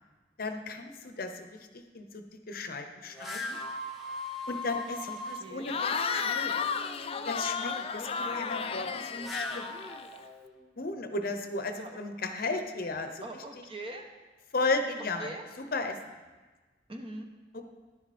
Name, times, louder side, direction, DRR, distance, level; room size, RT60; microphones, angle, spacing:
voice 1, 0.4-1.5 1.7-3.6 4.5-6.5 7.3-9.6 10.8-13.2 14.5-16.0 17.5-17.7, left 3 dB, 55° left, 7 dB, 0.8 m, -35 dB
sound 1, 3.1-5.4 9.0-10.7, left 2 dB, ahead, 1.0 m, -39 dB
voice 2, 5.1-5.7 11.7-12.0 13.2-14.0 15.2-15.4 16.9-17.3, right 1 dB, 30° right, 4 dB, 1.0 m, -42 dB
Cheering / Crowd, 5.6-10.2, left 5 dB, 35° left, 0.4 m, -33 dB
11.0 x 9.5 x 4.3 m, 1.3 s
head